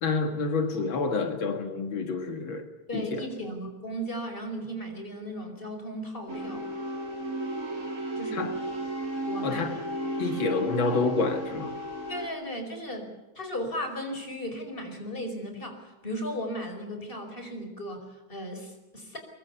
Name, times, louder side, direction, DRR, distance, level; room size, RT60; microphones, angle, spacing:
voice 1, 0.0-3.2 8.3-8.5 9.4-9.8 10.2-11.8, left 4 dB, 80° left, 5 dB, 2.5 m, -28 dB
voice 2, 2.9-6.7 8.2-8.6 9.2-9.8 10.1-10.4 12.1-19.2, equal, 25° left, 5 dB, 5.2 m, -36 dB
sound 1, 6.3-12.3, right 1 dB, 40° right, 5.2 m, -34 dB
23.5 x 23.0 x 7.1 m, 1.1 s
omnidirectional pair, 2.1 m